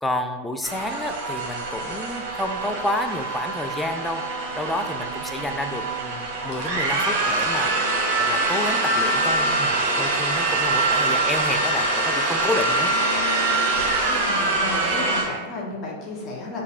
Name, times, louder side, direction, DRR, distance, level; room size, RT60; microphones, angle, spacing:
voice 1, 0.0-4.2 4.5-12.9, left 1 dB, 5° left, 5 dB, 0.3 m, -30 dB
sound 1, 0.6-15.2, right 2 dB, 45° right, 0.8 m, -24 dB
voice 2, 14.0-16.6, left 2 dB, 30° left, -3 dB, 0.9 m, -33 dB
6.4 x 2.6 x 2.4 m, 1.4 s
figure-of-eight pair, 90°, 0 cm